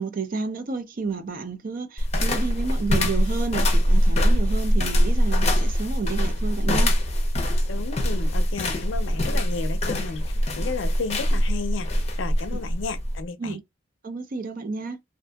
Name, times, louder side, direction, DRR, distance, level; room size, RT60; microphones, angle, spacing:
voice 1, 0.0-6.9 13.4-13.6 14.0-15.0, right 4 dB, 45° right, 0.5 m, -31 dB
sound 1, 2.0-13.2, equal, 35° left, 0.6 m, -23 dB
voice 2, 7.7-10.3 10.6-11.9 12.2-13.6, left 4 dB, 80° left, 0.5 m, -33 dB
2.6 x 2.5 x 2.2 m
head